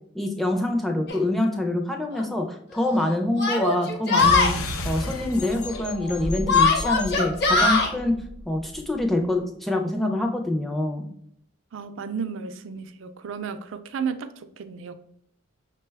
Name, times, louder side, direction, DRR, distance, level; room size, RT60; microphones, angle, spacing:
voice 1, 0.1-4.5 4.8-11.1, left 1 dB, ahead, 2 dB, 0.4 m, -25 dB
Yell, 1.1-1.2 2.1-2.2 3.4-4.5 6.5-7.9, left 4 dB, 50° left, 0.7 m, -20 dB
sound 1, 4.2-9.1, left 1 dB, 90° left, 0.5 m, -33 dB
voice 2, 11.7-14.9, right 6 dB, 65° right, 10 dB, 0.4 m, -33 dB
5.8 x 2.2 x 3.3 m, 0.69 s
head